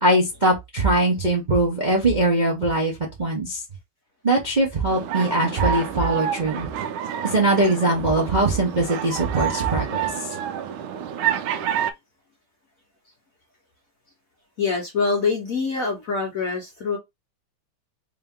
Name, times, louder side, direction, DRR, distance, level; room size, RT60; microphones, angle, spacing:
voice 1, 0.0-2.9 3.2-3.6 4.2-6.7 7.2-10.0, right 2 dB, 40° right, 0.6 m, -21 dB
sound 1, 4.9-11.9, right 8 dB, 75° right, 1.4 m, -28 dB
voice 2, 14.6-17.0, left 4 dB, 55° left, 1.0 m, -24 dB
3.6 x 2.7 x 3.6 m
omnidirectional pair, 2.4 m